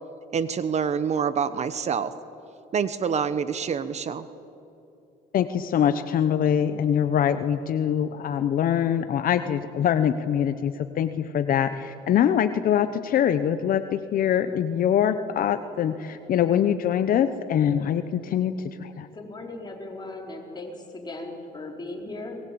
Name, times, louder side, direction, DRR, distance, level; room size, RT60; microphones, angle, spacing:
voice 1, 0.3-2.1 2.7-4.3, right 6 dB, 40° right, 13 dB, 1.0 m, -26 dB
voice 2, 5.3-19.1, left 9 dB, 55° left, 10 dB, 1.0 m, -24 dB
voice 3, 19.1-22.4, left 2 dB, 25° left, 0 dB, 4.6 m, -37 dB
24.0 x 21.0 x 8.7 m, 2.8 s
cardioid pair, 110°, 17 cm